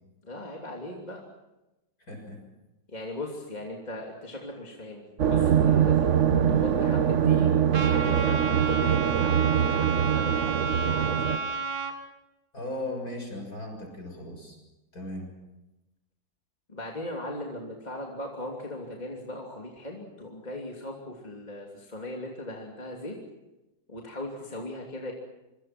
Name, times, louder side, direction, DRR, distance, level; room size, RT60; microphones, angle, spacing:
voice 1, 0.2-1.2 2.9-6.1 6.5-7.5 7.8-11.4 16.7-23.2 23.9-25.1, left 1 dB, 20° left, -1 dB, 3.1 m, -39 dB
voice 2, 2.0-2.4 12.5-14.6 14.9-15.3, left 1 dB, 50° left, 3 dB, 7.0 m, -37 dB
sound 1, 5.2-11.4, right 8 dB, 45° right, 1.1 m, -23 dB
Trumpet, 7.7-11.9, right 4 dB, 80° right, 3.1 m, -31 dB
27.0 x 24.0 x 6.0 m, 1.0 s
omnidirectional pair, 2.1 m